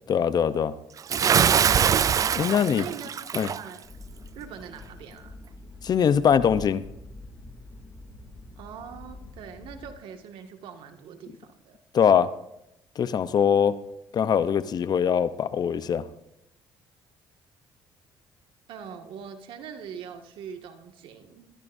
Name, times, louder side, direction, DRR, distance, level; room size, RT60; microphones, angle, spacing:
voice 1, 0.1-0.7 2.3-2.8 3.3-3.5 5.8-6.8 11.9-12.3 13.0-13.7 14.1-16.1, left 8 dB, 50° left, 14 dB, 0.8 m, -22 dB
Bathtub (filling or washing) / Splash splatter, 1.1-3.6, right 8 dB, 40° right, 0.4 m, -22 dB
voice 2, 2.6-3.9 4.4-5.4 8.6-11.8 18.7-21.5, right 7 dB, 75° right, 5 dB, 2.1 m, -42 dB
sound 1, 3.8-9.9, left 2 dB, 30° left, 2.8 m, -45 dB
21.0 x 14.5 x 2.7 m, 0.82 s
cardioid pair, 90°, 9 cm